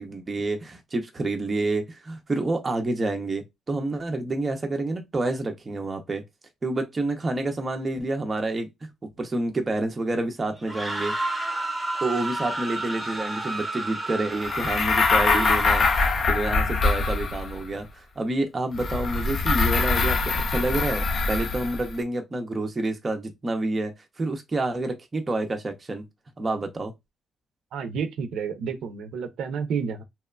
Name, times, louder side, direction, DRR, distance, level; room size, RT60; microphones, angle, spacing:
voice 1, 0.0-6.2 6.6-8.7 9.2-11.2 12.0-15.9 16.3-26.1 26.4-26.9, right 2 dB, 20° right, 0.5 m, -28 dB
sound 1, 10.6-16.3, right 2 dB, ahead, 0.8 m, -31 dB
sound 2, 14.4-17.7 18.7-21.9, left 4 dB, 40° left, 0.4 m, -23 dB
voice 2, 27.7-30.0, right 6 dB, 75° right, 0.5 m, -30 dB
2.9 x 2.1 x 2.2 m
cardioid pair, 170°, 0 cm